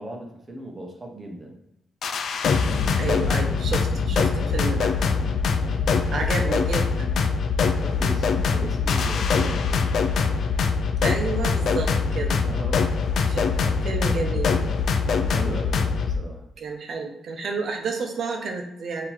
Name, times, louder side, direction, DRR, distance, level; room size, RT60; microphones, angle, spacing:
voice 1, 0.0-1.6 5.6-6.6 7.6-9.9 12.1-12.9 13.5-13.7 14.2-16.5, right 1 dB, 20° right, 1 dB, 1.0 m, -37 dB
sound 1, 2.0-16.2, left 5 dB, 60° left, 0.4 m, -23 dB
voice 2, 3.0-4.9 6.1-7.1 7.9-8.1 9.4-9.5 11.0-12.4 13.3-13.5 13.8-14.5 16.6-19.1, right 4 dB, 55° right, 3 dB, 0.8 m, -30 dB
3.7 x 2.9 x 4.5 m, 0.82 s
cardioid pair, 135°, 0 cm